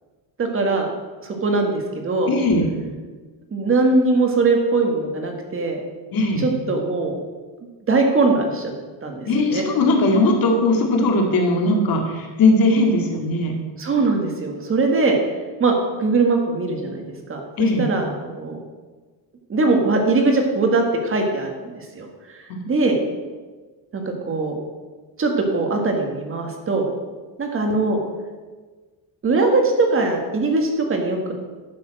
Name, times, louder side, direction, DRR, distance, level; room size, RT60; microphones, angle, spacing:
voice 1, 0.4-0.9 1.2-2.3 3.5-5.8 6.4-7.1 7.9-8.7 9.0-9.6 13.8-15.2 15.6-15.7 16.0-17.4 17.8-18.6 19.5-22.1 22.7-23.0 23.9-24.6 25.2-26.9 27.4-28.0 29.2-31.3, right 3 dB, 30° right, 3 dB, 1.6 m, -21 dB
voice 2, 2.3-2.7 6.1-6.5 9.3-13.6 17.6-17.9 22.5-22.6, left 2 dB, 50° left, 1 dB, 2.1 m, -19 dB
11.0 x 7.0 x 6.3 m, 1.4 s
cardioid pair, 170°, 46 cm